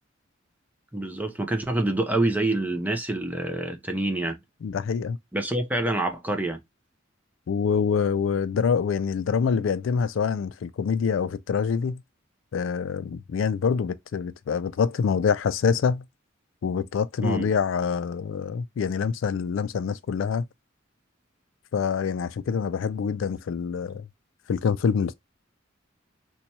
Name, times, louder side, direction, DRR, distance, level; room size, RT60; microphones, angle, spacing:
voice 1, 0.9-4.4 5.3-6.6 17.2-17.5, right 2 dB, 10° right, 0.6 m, -26 dB
voice 2, 4.6-5.2 7.5-12.0 12.5-16.0 16.6-20.4 21.7-24.1 24.5-25.1, left 6 dB, 70° left, 0.3 m, -25 dB
2.9 x 2.3 x 4.0 m
head